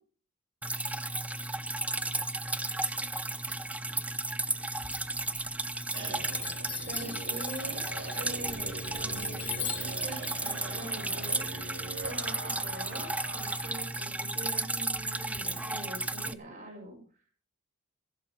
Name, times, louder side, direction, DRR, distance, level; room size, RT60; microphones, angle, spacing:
Drip, 0.6-16.3, right 2 dB, 5° right, 0.5 m, -34 dB
sound 1, 4.7-13.8 14.1-14.2 14.5-14.6 14.9-15.4, right 2 dB, 60° right, 4.7 m, -43 dB
Chime, 5.3-5.8 6.2-12.1, left 13 dB, 50° left, 1.7 m, -43 dB
voice 1, 6.9-7.8 8.1-11.4 12.0-17.0, right 1 dB, 45° right, -4 dB, 5.4 m, -44 dB
14.5 x 11.0 x 5.9 m, 0.41 s
head